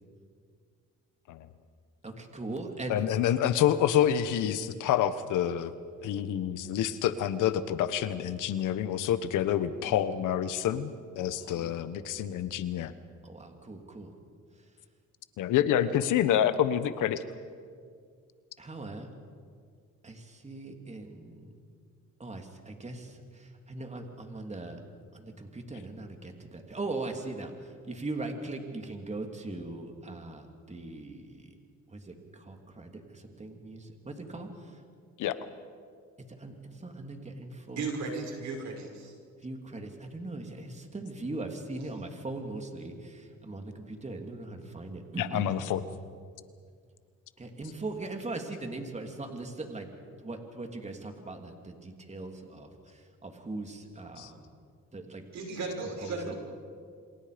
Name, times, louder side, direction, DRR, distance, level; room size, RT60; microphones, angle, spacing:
voice 1, 2.0-3.0 9.8-10.0 11.4-11.9 13.2-14.1 18.6-19.1 20.0-21.6 22.2-24.8 25.1-27.5 27.9-31.5 31.9-34.5 36.4-37.9 39.4-45.6 47.4-49.9 50.2-52.7 53.2-54.4 54.9-55.2 56.0-56.3, right 2 dB, 20° right, 4 dB, 3.2 m, -40 dB
voice 2, 2.9-5.7 6.0-12.9 15.4-17.2 35.2-35.4 45.2-45.8 54.2-54.3, left 10 dB, 85° left, 13 dB, 1.3 m, -27 dB
voice 3, 37.7-39.1 55.3-56.3, right 3 dB, 65° right, 2 dB, 6.4 m, -35 dB
28.5 x 26.0 x 5.2 m, 2.1 s
cardioid pair, 90°, 30 cm